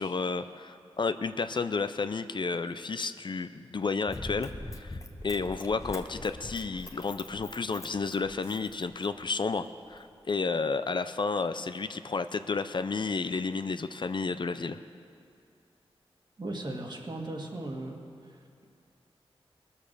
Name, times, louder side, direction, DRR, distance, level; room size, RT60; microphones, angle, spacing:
voice 1, 0.0-5.0 5.2-14.8, left 4 dB, 50° left, 11 dB, 0.5 m, -31 dB
Run, 4.1-9.3 9.9-10.0, left 1 dB, 30° left, 1.0 m, -43 dB
voice 2, 16.4-18.6, right 1 dB, 45° right, 1 dB, 1.9 m, -38 dB
20.0 x 7.1 x 6.7 m, 2.5 s
wide cardioid pair, 80°, 10 cm